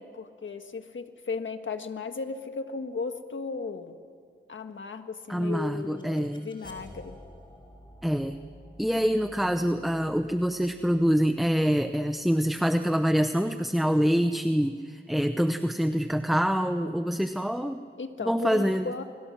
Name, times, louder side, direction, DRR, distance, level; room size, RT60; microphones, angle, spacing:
voice 1, 0.0-4.0 4.5-7.2 18.0-19.0, left 4 dB, 70° left, 7 dB, 1.6 m, -36 dB
sound 1, 5.2-14.1, equal, 25° left, 5.0 m, -52 dB
voice 2, 5.3-6.5 8.0-8.4 8.8-17.8 18.2-18.9, equal, ahead, 8 dB, 0.8 m, -25 dB
29.5 x 23.0 x 6.2 m, 2.3 s
wide cardioid pair, 80°, 20 cm